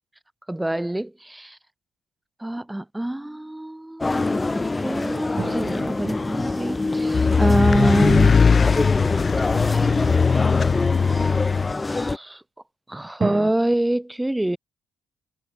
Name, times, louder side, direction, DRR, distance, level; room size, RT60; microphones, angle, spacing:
voice 1, 0.5-1.6 2.4-8.6 9.5-9.7 11.9-12.4 12.9-14.6, right 1 dB, 10° right, 2.2 m, -26 dB
sound 1, 4.0-12.2, left 3 dB, 20° left, 1.5 m, -25 dB
sound 2, 5.4-8.3 13.2-13.5, right 5 dB, 35° right, 3.7 m, -34 dB
sound 3, 7.1-11.7, left 5 dB, 40° left, 0.4 m, -19 dB
cardioid pair, 90°, 0 cm